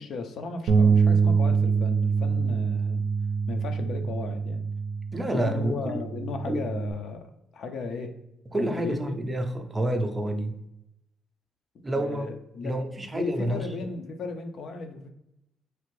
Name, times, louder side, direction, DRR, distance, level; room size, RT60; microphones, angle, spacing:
voice 1, 0.0-3.1 3.5-4.6 5.3-7.3 7.5-8.2 8.5-9.2 11.9-12.7 13.1-15.1, left 4 dB, 65° left, 5 dB, 0.5 m, -35 dB
Bass guitar, 0.7-6.9, right 5 dB, 80° right, 0.3 m, -25 dB
voice 2, 5.1-6.0 6.5-6.6 8.5-10.6 11.8-12.3 12.6-13.9, right 1 dB, 20° right, 5 dB, 0.4 m, -28 dB
3.2 x 2.5 x 3.1 m, 0.84 s
cardioid pair, 90°, 0 cm